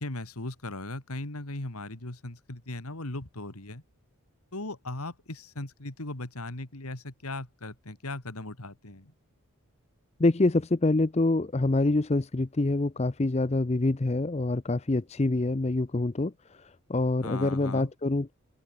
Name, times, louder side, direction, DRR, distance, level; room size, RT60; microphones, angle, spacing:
voice 1, 0.0-3.8 4.5-9.1 17.2-17.9, left 2 dB, 85° left, 2.7 m, -38 dB
voice 2, 10.2-16.3 16.9-18.3, left 2 dB, 30° left, 0.5 m, -26 dB
open air
head